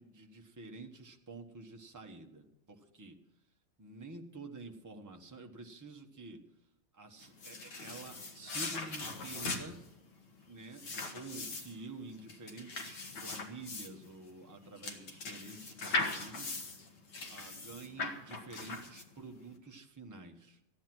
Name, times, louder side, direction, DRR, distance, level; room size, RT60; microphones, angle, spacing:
voice 1, 0.0-3.2 3.8-6.4 6.9-9.9 10.5-16.6 17.3-20.6, right 3 dB, 15° right, 3 dB, 0.8 m, -49 dB
sound 1, 7.2-19.3, left 3 dB, 65° left, 2.0 m, -40 dB
14.5 x 10.0 x 6.1 m, 0.84 s
omnidirectional pair, 2.0 m